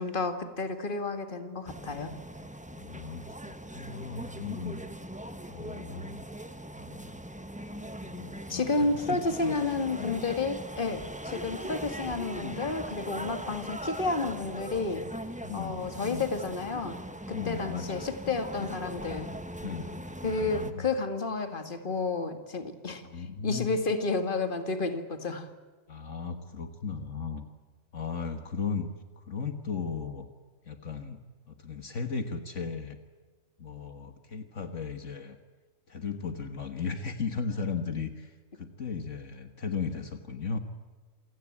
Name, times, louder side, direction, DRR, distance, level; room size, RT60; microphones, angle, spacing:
voice 1, 0.0-2.1 8.5-15.1 15.5-17.0 17.3-19.3 20.2-25.5, left 3 dB, 40° left, 8 dB, 2.1 m, -31 dB
sound 1, 1.7-20.7, right 1 dB, 5° right, 1.2 m, -40 dB
voice 2, 2.7-4.8 5.5-6.2 6.8-7.2 8.0-9.2 9.4-9.7 10.0-10.2 12.5-12.7 15.4-16.3 17.3-17.9 18.2-18.7 19.6-20.9 22.9-23.7 25.9-27.5 27.9-28.9 29.2-30.3 30.6-31.2 31.5-33.0 33.6-35.4 35.9-40.6, left 5 dB, 65° left, 7 dB, 1.8 m, -36 dB
28.5 x 18.0 x 8.8 m, 1.4 s
omnidirectional pair, 1.4 m